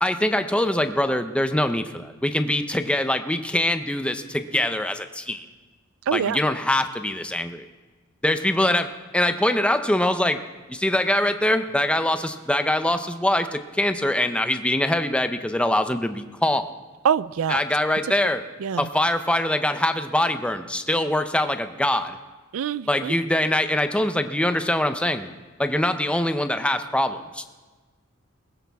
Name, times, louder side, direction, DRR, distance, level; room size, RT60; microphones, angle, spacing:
voice 1, 0.0-5.4 6.1-7.6 8.2-8.9 9.1-10.4 10.7-16.7 17.5-18.4 18.8-22.2 22.9-25.3 25.6-27.4, left 1 dB, 5° left, 8 dB, 0.7 m, -23 dB
voice 2, 6.1-6.4 17.0-17.6 18.6-18.9 22.5-23.1, right 7 dB, 80° right, 19 dB, 0.4 m, -24 dB
20.5 x 14.5 x 3.5 m, 1.3 s
head